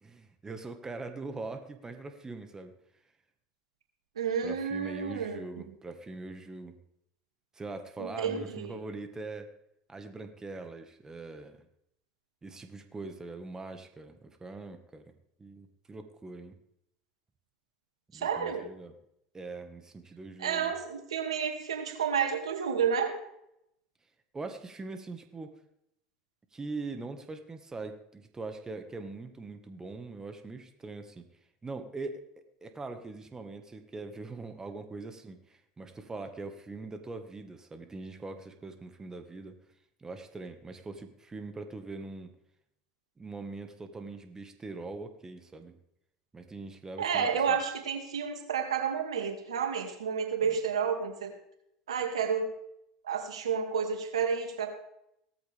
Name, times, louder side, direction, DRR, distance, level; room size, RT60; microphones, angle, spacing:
voice 1, 0.0-2.7 4.4-6.8 7.5-9.5 9.9-11.6 12.4-15.0 15.4-16.6 18.1-18.9 19.3-20.7 24.3-25.5 26.5-31.2 31.6-32.3 32.6-39.6 40.0-42.3 43.2-45.8 46.3-47.6 50.4-50.6, right 3 dB, 20° right, 7 dB, 1.8 m, -42 dB
voice 2, 4.2-5.6 8.0-8.7 18.1-18.6 20.4-23.1 47.0-51.3 51.9-52.5 53.0-54.7, right 6 dB, 90° right, 4 dB, 2.5 m, -30 dB
17.5 x 14.0 x 3.6 m, 0.77 s
hypercardioid pair, 85°, 3 cm